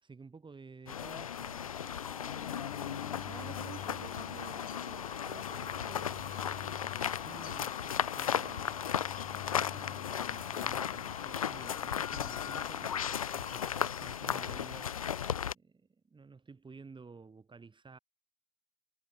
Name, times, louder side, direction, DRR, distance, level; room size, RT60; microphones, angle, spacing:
voice 1, 0.0-1.7 7.2-8.9 9.3-13.0 13.3-14.9 15.5-18.0, right 4 dB, 25° right, 3.5 m, -53 dB
sound 1, 0.9-15.5, left 8 dB, 90° left, 0.4 m, -36 dB
sound 2, 1.5-13.8, left 9 dB, 40° left, 0.9 m, -47 dB
voice 2, 3.2-6.7, right 39 dB, 70° right, 0.9 m, -52 dB
figure-of-eight pair, 50°, 17 cm